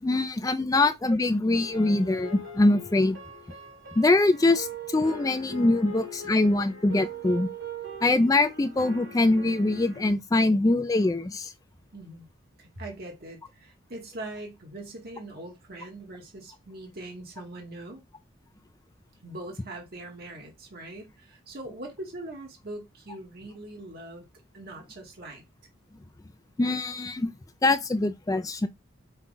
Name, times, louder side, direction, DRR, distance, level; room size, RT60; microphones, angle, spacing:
voice 1, 0.0-3.2 4.0-7.5 8.0-11.5 26.6-27.3 27.6-28.7, left 2 dB, 15° left, 0.3 m, -23 dB
sound 1, 1.5-10.1, right 2 dB, 70° right, 3.6 m, -41 dB
voice 2, 11.9-12.3 12.6-18.0 19.2-24.3 24.5-25.4, right 2 dB, 45° right, 1.3 m, -42 dB
5.6 x 2.4 x 3.8 m
head